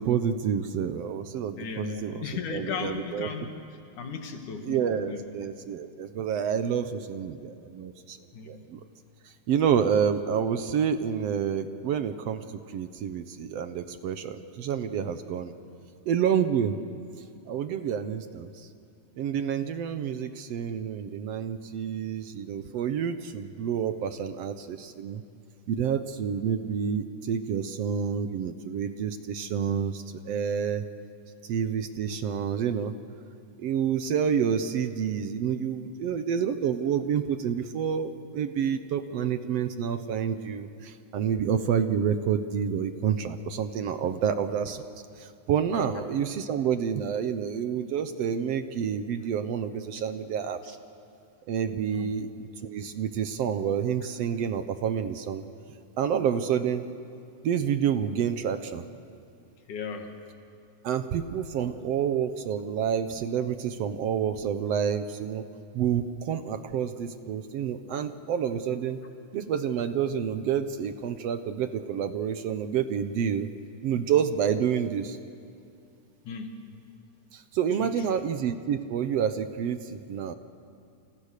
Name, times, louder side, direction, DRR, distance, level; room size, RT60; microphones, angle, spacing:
voice 1, 0.0-2.2 2.5-3.3 4.6-8.2 8.5-8.8 9.5-15.5 16.1-16.8 17.5-18.7 19.2-25.2 25.7-30.8 31.4-32.9 33.6-44.9 45.2-50.8 51.5-55.4 56.0-56.9 57.4-58.9 60.8-65.5 65.7-69.0 69.3-73.5 73.8-75.2 77.3-80.3, right 8 dB, 65° right, 10 dB, 1.8 m, -28 dB
voice 2, 1.6-3.5 4.0-5.2 8.3-8.7 45.7-45.9 51.9-52.1 59.7-60.1 76.3-76.6 77.8-78.2, left 5 dB, 85° left, 5 dB, 3.5 m, -36 dB
29.5 x 29.0 x 6.7 m, 2.5 s
omnidirectional pair, 3.4 m